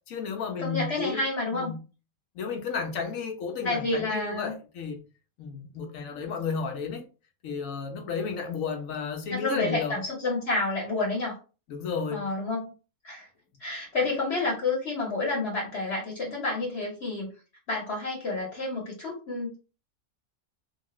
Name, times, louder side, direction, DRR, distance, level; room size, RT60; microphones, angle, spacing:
voice 1, 0.1-1.2 1.5-1.8 2.3-5.0 5.4-7.0 7.4-10.0 11.7-12.3, left 5 dB, 70° left, 1.1 m, -32 dB
voice 2, 0.6-1.7 3.6-4.6 9.3-11.4 12.1-12.7 13.0-13.3 13.6-17.3 17.7-19.6, left 2 dB, 50° left, 1.1 m, -29 dB
3.0 x 2.4 x 3.0 m
omnidirectional pair, 1.5 m